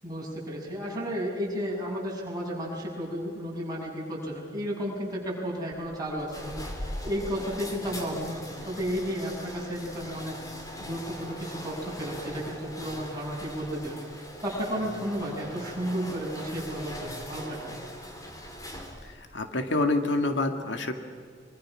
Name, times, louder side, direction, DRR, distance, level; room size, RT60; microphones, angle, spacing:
voice 1, 0.0-14.0 14.4-17.8, equal, 20° right, -4 dB, 7.2 m, -33 dB
sound 1, 5.7-19.2, equal, 20° left, 3.1 m, -41 dB
voice 2, 19.3-20.9, left 2 dB, 75° left, 6 dB, 1.9 m, -26 dB
25.0 x 25.0 x 6.2 m, 2.2 s
head